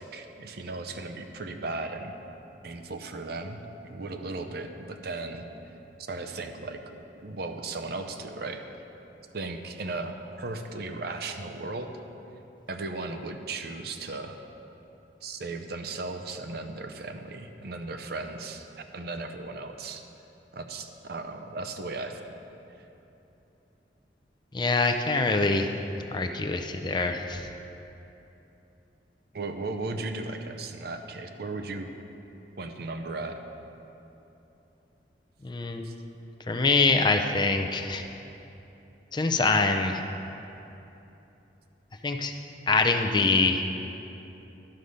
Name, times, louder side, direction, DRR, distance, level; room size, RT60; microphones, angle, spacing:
voice 1, 0.0-2.1 2.6-5.5 6.1-8.6 9.3-11.9 12.7-14.4 15.2-18.7 18.9-20.0 20.5-22.3 22.8-22.9 29.3-31.9 32.6-33.4 35.8-35.9, right 3 dB, 60° right, 6 dB, 0.7 m, -36 dB
voice 2, 24.5-25.7 26.1-27.5 35.4-35.9 36.5-38.0 39.1-40.0 42.0-42.3 42.7-43.6, left 3 dB, 25° left, 5 dB, 0.5 m, -24 dB
11.5 x 6.5 x 5.4 m, 3.0 s
head